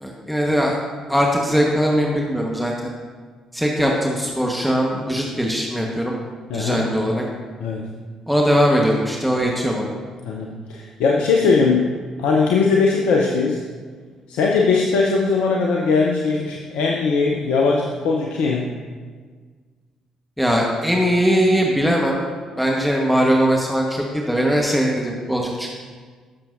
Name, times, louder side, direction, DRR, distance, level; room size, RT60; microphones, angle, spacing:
voice 1, 0.0-0.8 1.1-2.9 3.5-6.2 6.5-7.2 8.3-9.9 20.4-22.2 22.6-25.8, equal, ahead, -2 dB, 1.3 m, -20 dB
voice 2, 6.5-6.8 7.6-7.9 10.2-11.9 12.2-13.6 14.3-18.7, left 4 dB, 70° left, -1 dB, 0.7 m, -19 dB
14.5 x 6.8 x 2.6 m, 1.6 s
figure-of-eight pair, 40°, 2 cm